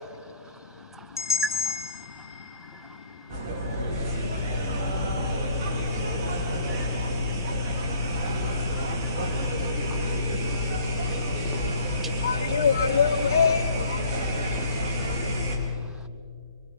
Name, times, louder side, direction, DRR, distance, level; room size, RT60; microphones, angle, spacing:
voice 1, 0.3-4.0 4.4-11.4 12.0-12.3 14.0-14.6 14.9-15.1, right 4 dB, 10° right, 0.4 m, -45 dB
sound 1, 1.2-5.2, left 5 dB, 85° left, 1.5 m, -34 dB
sound 2, 3.3-15.6, left 1 dB, 45° right, 4.6 m, -28 dB
voice 2, 3.7-4.1 4.9-5.0 6.4-6.5 6.9-7.0 7.4-7.8 11.4-11.5 12.2-14.7, left 6 dB, 65° left, 1.1 m, -27 dB
voice 3, 6.4-6.8 11.4-12.0 15.1-15.7, left 6 dB, 25° left, 2.3 m, -47 dB
25.0 x 24.5 x 5.3 m
hypercardioid pair, 125°, 2 cm